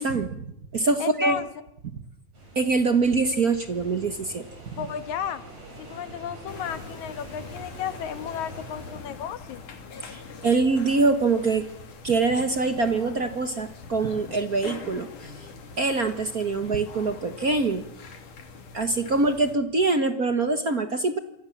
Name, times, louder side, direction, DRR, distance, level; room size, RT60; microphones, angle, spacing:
voice 1, 0.0-1.4 2.5-4.4 4.7-4.9 10.0-11.7 12.0-15.3 15.8-17.8 18.7-21.2, right 3 dB, 45° right, 9 dB, 1.2 m, -24 dB
voice 2, 1.0-1.5 4.8-5.4 5.8-9.6, left 9 dB, 70° left, 12 dB, 2.8 m, -33 dB
sound 1, 2.3-9.0, right 1 dB, 60° right, 9.3 m, -44 dB
sound 2, 6.5-19.5, left 5 dB, 90° left, 4.4 m, -43 dB
28.0 x 25.0 x 7.3 m, 0.83 s
omnidirectional pair, 3.5 m